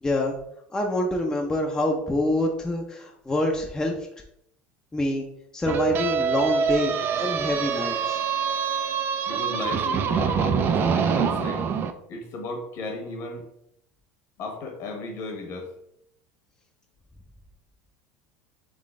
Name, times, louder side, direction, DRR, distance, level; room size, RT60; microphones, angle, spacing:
voice 1, 0.0-0.4 0.7-3.9 4.9-5.3 5.5-8.2, left 1 dB, 10° left, 1 dB, 0.6 m, -26 dB
sound 1, 5.7-11.9, right 6 dB, 40° right, 0.5 m, -25 dB
voice 2, 9.3-11.7 12.1-13.5 14.4-15.7, left 2 dB, 55° left, 3 dB, 1.4 m, -34 dB
3.9 x 3.7 x 3.7 m, 0.74 s
supercardioid pair, 115°, 6 cm